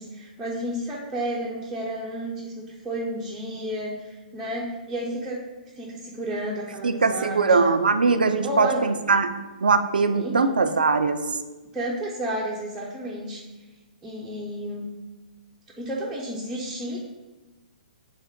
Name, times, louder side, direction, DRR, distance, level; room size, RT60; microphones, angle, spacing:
voice 1, 0.0-5.4 5.7-7.7 8.4-8.8 10.1-10.5 11.7-13.4 14.0-14.9 15.8-17.0, equal, 10° right, -6 dB, 0.6 m, -31 dB
voice 2, 6.8-9.3 9.6-11.2, right 4 dB, 75° right, 9 dB, 0.4 m, -21 dB
3.5 x 3.5 x 4.2 m, 1.2 s
figure-of-eight pair, 125°, 5 cm